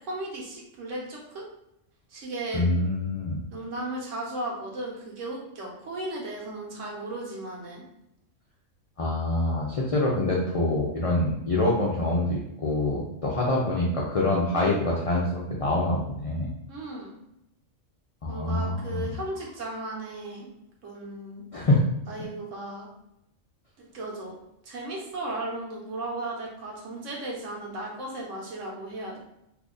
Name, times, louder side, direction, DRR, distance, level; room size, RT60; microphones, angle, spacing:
voice 1, 0.1-1.5 2.1-2.6 3.5-7.8 14.5-14.7 16.7-17.2 18.3-20.5 20.8-21.4 22.1-22.9 23.8-24.4 24.6-29.2, right 2 dB, 75° right, -2 dB, 1.2 m, -35 dB
voice 2, 2.5-3.4 9.0-16.5 18.2-19.1 21.5-21.8, left 2 dB, 60° left, -4 dB, 0.3 m, -25 dB
2.8 x 2.5 x 3.7 m, 0.81 s
omnidirectional pair, 1.3 m